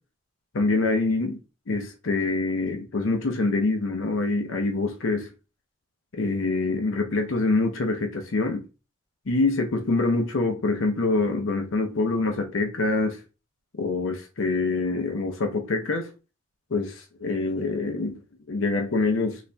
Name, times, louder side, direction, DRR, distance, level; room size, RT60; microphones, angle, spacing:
voice 1, 0.5-1.4 1.7-5.3 6.1-8.6 9.3-13.2 13.8-16.1 16.7-18.2 18.5-19.4, left 3 dB, 75° left, 0.6 m, -25 dB
4.0 x 3.0 x 2.2 m
head